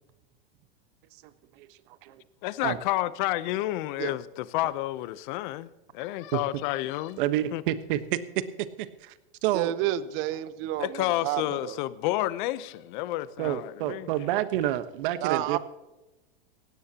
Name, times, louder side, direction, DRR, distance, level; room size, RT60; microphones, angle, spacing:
voice 1, 1.5-2.2 2.6-2.8 6.3-6.4 7.2-9.1 9.4-9.7 13.4-15.6, right 13 dB, 60° right, 1.3 m, -29 dB
voice 2, 2.4-7.2 7.5-7.6 10.8-14.1, left 16 dB, 55° left, 0.9 m, -30 dB
voice 3, 9.5-11.8 15.2-15.6, right 13 dB, 40° right, 1.0 m, -30 dB
18.0 x 16.5 x 3.0 m
supercardioid pair, 135°, 29 cm